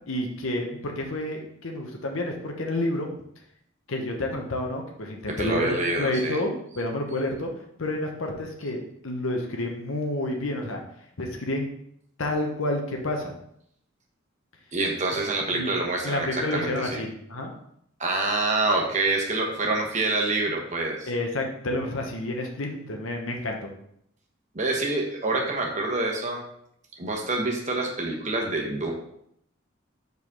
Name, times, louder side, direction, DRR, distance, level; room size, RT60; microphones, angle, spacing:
voice 1, 0.1-3.1 3.9-10.8 11.2-11.7 12.2-13.3 15.5-15.7 16.0-17.5 21.1-23.7, left 1 dB, 90° left, 2 dB, 1.0 m, -29 dB
voice 2, 5.4-6.4 14.7-17.0 18.0-21.1 24.5-26.4 27.0-28.9, right 2 dB, 35° right, 0 dB, 1.2 m, -26 dB
5.0 x 4.1 x 5.3 m, 0.72 s
head